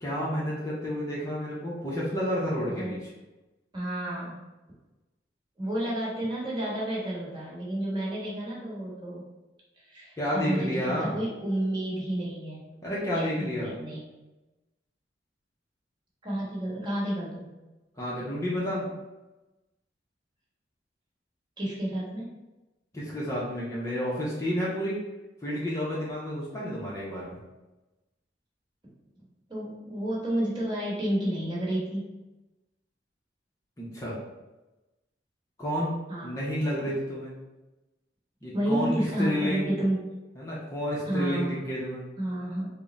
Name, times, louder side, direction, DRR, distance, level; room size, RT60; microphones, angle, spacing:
voice 1, 0.0-3.0 10.2-11.2 12.8-13.7 18.0-18.9 22.9-25.0 25.4-27.4 33.8-34.2 35.6-37.3 38.4-39.7 40.4-42.0, equal, 15° left, -7 dB, 0.6 m, -30 dB
voice 2, 3.7-4.4 5.6-9.3 9.8-12.6 13.1-14.0 16.2-17.5 21.6-22.3 29.5-32.1 36.1-36.4 36.8-37.0 38.5-40.0 41.0-41.6 42.2-42.7, right 1 dB, 25° right, -6 dB, 1.2 m, -31 dB
3.5 x 2.1 x 4.0 m, 1.1 s
head